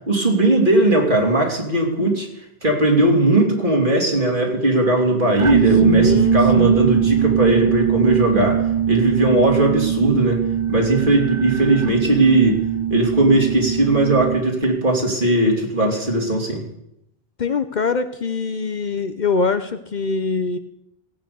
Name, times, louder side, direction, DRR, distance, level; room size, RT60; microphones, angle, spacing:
voice 1, 0.1-2.3 2.6-8.6 8.9-10.4 10.7-12.6 12.9-16.6, right 1 dB, 55° right, 0 dB, 3.2 m, -18 dB
sound 1, 5.4-14.6, right 9 dB, 40° right, 0.5 m, -21 dB
voice 2, 5.8-6.9 17.4-20.6, left 4 dB, 50° left, 10 dB, 0.8 m, -23 dB
16.5 x 8.9 x 6.9 m, 0.81 s
omnidirectional pair, 1.0 m